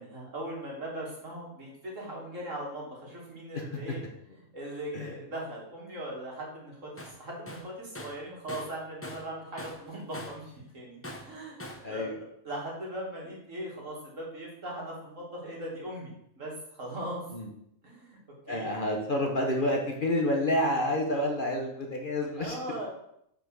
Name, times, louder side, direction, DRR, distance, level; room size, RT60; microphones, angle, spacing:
voice 1, 0.0-4.0 4.5-12.2 12.4-17.2 17.8-18.2 18.5-18.8 22.4-22.9, right 1 dB, 65° right, -3 dB, 2.5 m, -39 dB
Tools, 7.0-7.2 7.5-9.3 9.6-10.5 11.0-11.9, left 1 dB, 15° left, 0.5 m, -43 dB
voice 2, 18.5-22.6, left 1 dB, 40° left, 1 dB, 1.1 m, -28 dB
5.9 x 5.0 x 6.2 m, 0.76 s
omnidirectional pair, 1.4 m